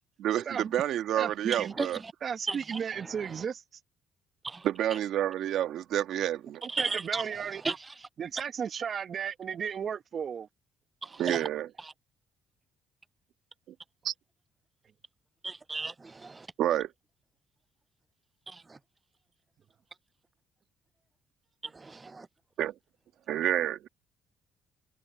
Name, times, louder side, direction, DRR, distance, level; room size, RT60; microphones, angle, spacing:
voice 1, 0.2-2.0 4.6-6.6 11.2-11.7 14.0-14.1 16.6-16.9 22.6-22.7 23.3-23.9, right 11 dB, 70° right, 1.6 m, -29 dB
voice 2, 1.2-1.7 2.2-3.6 6.6-7.8 8.2-10.5, right 7 dB, 45° right, 1.1 m, -34 dB
voice 3, 6.8-7.2 7.6-7.7 15.4-16.5 21.8-22.3, right 3 dB, 25° right, 0.3 m, -33 dB
cardioid pair, 100°, 0 cm